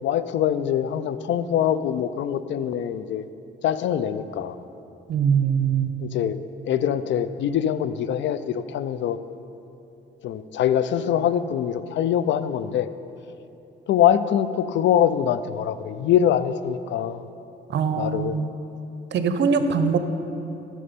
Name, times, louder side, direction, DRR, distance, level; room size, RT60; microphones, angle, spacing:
voice 1, 0.0-3.3 3.6-4.6 6.0-6.4 6.7-9.2 10.2-12.9 13.9-17.2 17.9-18.4, left 9 dB, 65° left, 13 dB, 0.4 m, -23 dB
voice 2, 5.1-5.9 17.7-18.5 19.1-20.0, right 6 dB, 65° right, 9 dB, 0.7 m, -22 dB
11.0 x 6.3 x 5.2 m, 2.8 s
cardioid pair, 90°, 20 cm